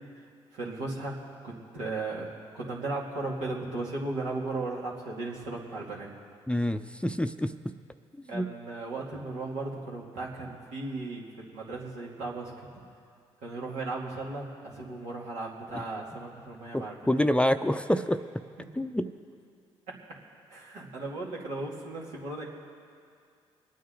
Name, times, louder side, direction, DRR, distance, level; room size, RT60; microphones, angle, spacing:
voice 1, 0.5-1.2 1.4-6.1 8.3-12.5 13.4-17.0 20.5-22.4, right 2 dB, 80° right, -4 dB, 2.6 m, -36 dB
voice 2, 6.5-7.5 8.3-8.5 16.7-18.2 18.8-19.1, left 1 dB, 10° left, 9 dB, 0.6 m, -27 dB
24.5 x 9.4 x 3.9 m, 2.3 s
hypercardioid pair, 50°, 13 cm